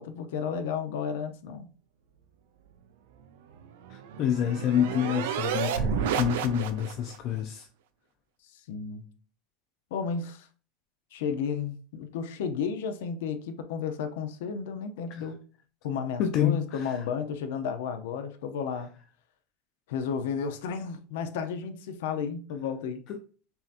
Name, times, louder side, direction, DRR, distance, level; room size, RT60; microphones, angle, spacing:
voice 1, 0.0-1.7 8.5-9.0 9.9-10.5 11.1-15.4 15.8-18.9 19.9-23.0, left 6 dB, 75° left, 0.6 m, -33 dB
sound 1, 3.5-7.2, right 7 dB, 75° right, 0.5 m, -31 dB
voice 2, 3.9-7.7 15.1-15.2 16.2-17.0 23.1-23.2, left 9 dB, 35° left, 0.4 m, -28 dB
5.6 x 2.8 x 2.5 m
supercardioid pair, 170°, 0 cm